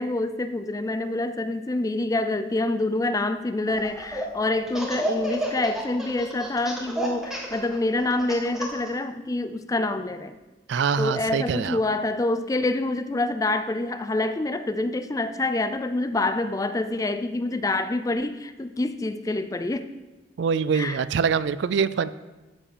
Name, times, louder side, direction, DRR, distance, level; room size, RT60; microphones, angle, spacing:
voice 1, 0.0-10.3 11.0-19.9 20.7-21.0, left 2 dB, 15° left, 11 dB, 0.3 m, -26 dB
Laughter, 3.7-4.3 4.7-8.9, right 1 dB, ahead, 1.3 m, -30 dB
voice 2, 10.7-11.8 20.4-22.1, right 6 dB, 60° right, 16 dB, 0.3 m, -24 dB
12.5 x 5.0 x 5.0 m, 1.1 s
head